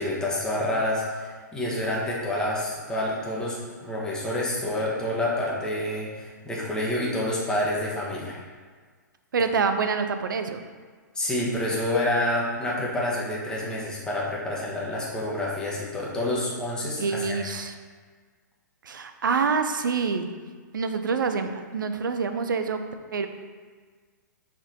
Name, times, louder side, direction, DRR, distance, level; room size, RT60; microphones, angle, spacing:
voice 1, 0.0-8.4 11.1-17.4, left 1 dB, 5° left, -6 dB, 1.3 m, -28 dB
voice 2, 9.3-10.6 17.0-17.7 18.8-20.3 20.7-22.8 23.1-23.3, right 5 dB, 85° right, 8 dB, 0.5 m, -26 dB
5.8 x 3.6 x 4.4 m, 1.5 s
hypercardioid pair, 135°, 11 cm